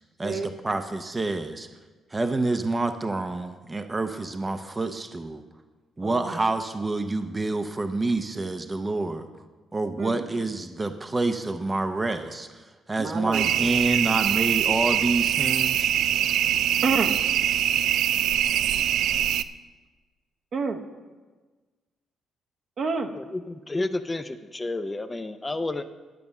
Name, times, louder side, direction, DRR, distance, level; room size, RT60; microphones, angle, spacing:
voice 1, 0.2-1.7 2.1-5.4 6.0-9.3 9.7-15.9, right 2 dB, 20° right, 7 dB, 0.6 m, -28 dB
voice 2, 6.0-6.5 10.0-10.2 13.0-13.5 16.8-17.1 20.5-20.8 22.8-23.1, right 4 dB, 55° right, 4 dB, 1.1 m, -28 dB
sound 1, 13.3-19.4, right 10 dB, 80° right, 0.3 m, -23 dB
voice 3, 23.1-25.9, left 2 dB, 20° left, 9 dB, 0.5 m, -31 dB
11.0 x 5.3 x 7.1 m, 1.3 s
cardioid pair, 90°, 0 cm